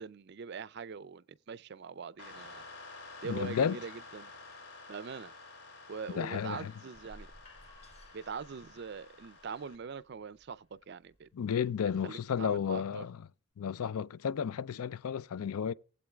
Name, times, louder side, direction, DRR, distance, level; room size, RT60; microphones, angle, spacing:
voice 1, 0.0-2.6 3.2-4.3 4.9-5.3 5.9-7.3 8.1-11.3 12.0-13.0, right 5 dB, 50° right, 0.4 m, -43 dB
sound 1, 2.2-9.8, left 3 dB, 75° left, 2.8 m, -51 dB
voice 2, 3.2-3.8 6.1-6.7 11.3-13.2 13.6-15.7, left 7 dB, 90° left, 0.4 m, -32 dB
sound 2, 6.9-12.7, left 1 dB, 30° left, 1.6 m, -59 dB
19.0 x 8.0 x 2.3 m
head